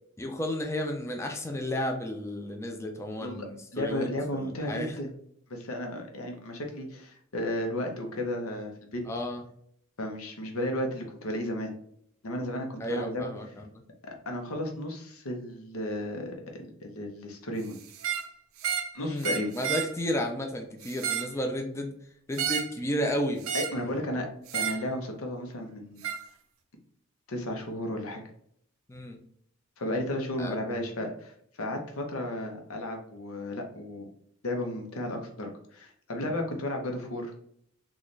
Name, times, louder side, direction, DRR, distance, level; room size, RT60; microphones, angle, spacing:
voice 1, 0.2-4.9 9.1-9.4 12.8-13.6 19.0-19.3 19.5-21.9 22.3-23.5 28.9-29.2 30.4-30.8, equal, 15° left, 3 dB, 0.4 m, -32 dB
voice 2, 3.7-5.1 5.5-9.0 10.0-11.7 12.2-13.5 14.0-17.8 18.9-19.5 23.5-24.3 24.5-26.0 27.3-28.2 29.8-31.3 31.6-34.0 34.4-37.3, left 1 dB, 90° left, 3 dB, 0.8 m, -34 dB
sound 1, 17.9-18.3 18.6-18.9 19.2-19.9 20.8-21.3 22.4-22.8 23.4-23.8 24.5-24.8 26.0-26.2, right 8 dB, 75° right, 0.5 m, -31 dB
4.0 x 2.4 x 3.1 m, 0.67 s
head